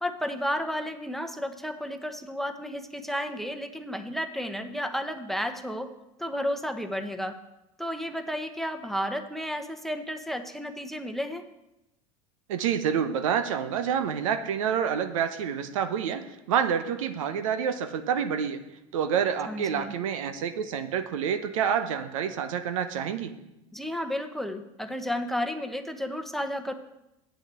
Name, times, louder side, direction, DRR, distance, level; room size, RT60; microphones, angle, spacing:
voice 1, 0.0-5.9 6.2-7.4 7.8-11.4 19.5-19.9 23.7-26.7, equal, ahead, 7 dB, 1.0 m, -32 dB
voice 2, 12.5-18.6 18.9-23.3, right 8 dB, 70° right, 9 dB, 0.9 m, -28 dB
8.5 x 6.4 x 7.6 m, 0.90 s
hypercardioid pair, 80°, 17 cm